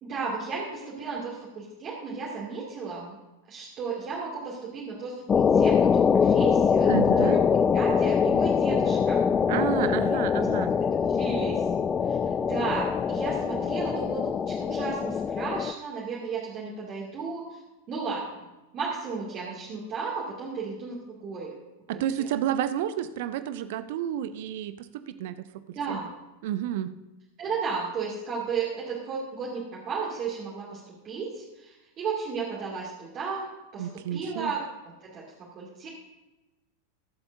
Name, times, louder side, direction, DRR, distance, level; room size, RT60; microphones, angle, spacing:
voice 1, 0.0-3.2 3.5-9.3 9.5-10.5 11.1-11.6 12.1-17.6 17.9-18.4 18.7-21.6 21.9-22.3 25.7-26.1 27.4-34.6 35.0-35.2 35.5-35.9, right 4 dB, 30° right, -6 dB, 2.6 m, -34 dB
sound 1, 5.3-15.7, left 6 dB, 20° left, 0.4 m, -23 dB
voice 2, 6.9-7.4 9.5-10.7 21.9-26.0 26.4-26.9 33.8-34.5, right 11 dB, 50° right, 13 dB, 0.6 m, -30 dB
22.5 x 7.9 x 2.7 m, 1.1 s
figure-of-eight pair, 90°, 0 cm